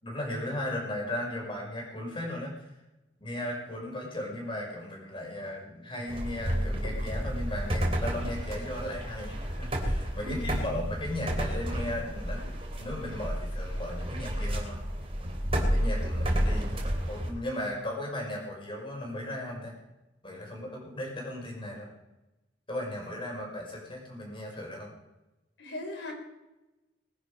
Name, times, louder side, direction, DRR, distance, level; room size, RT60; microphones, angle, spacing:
voice 1, 0.0-2.7 3.2-12.4 12.8-14.8 15.5-16.8 17.1-19.7 20.2-21.9 22.7-24.9, left 1 dB, 30° left, 0 dB, 5.9 m, -36 dB
sound 1, 6.1-17.3, equal, 35° right, 3.4 m, -31 dB
voice 2, 10.2-10.8 25.6-26.1, left 1 dB, 75° left, 2 dB, 4.9 m, -39 dB
21.5 x 11.0 x 5.3 m, 1.0 s
head